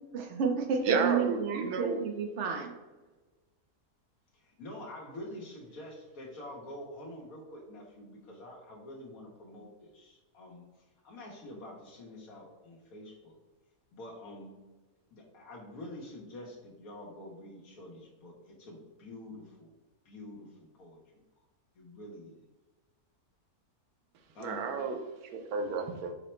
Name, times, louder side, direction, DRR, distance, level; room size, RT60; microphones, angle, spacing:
voice 1, 0.1-2.7, right 6 dB, 60° right, 4 dB, 0.8 m, -30 dB
voice 2, 0.8-2.0 24.4-25.0 25.3-26.1, right 5 dB, 90° right, 5 dB, 1.1 m, -31 dB
voice 3, 4.3-10.6 11.0-13.4 13.9-14.5 15.1-19.7 20.0-21.0 21.8-22.5 24.3-24.7, left 1 dB, 75° left, -1 dB, 1.4 m, -47 dB
5.6 x 2.1 x 4.3 m, 1.2 s
omnidirectional pair, 1.6 m